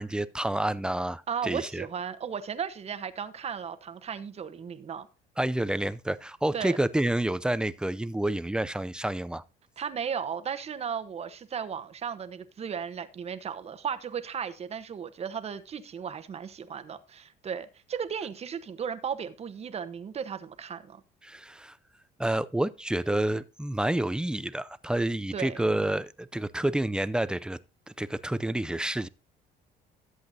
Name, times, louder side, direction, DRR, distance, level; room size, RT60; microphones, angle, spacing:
voice 1, 0.0-1.9 5.4-9.4 21.2-21.8 22.2-27.6 27.9-29.1, right 1 dB, 5° right, 0.4 m, -29 dB
voice 2, 1.3-5.1 6.5-6.8 9.8-21.0 25.3-25.6, right 7 dB, 40° right, 1.0 m, -35 dB
13.5 x 7.9 x 2.7 m
cardioid pair, 110°, 17 cm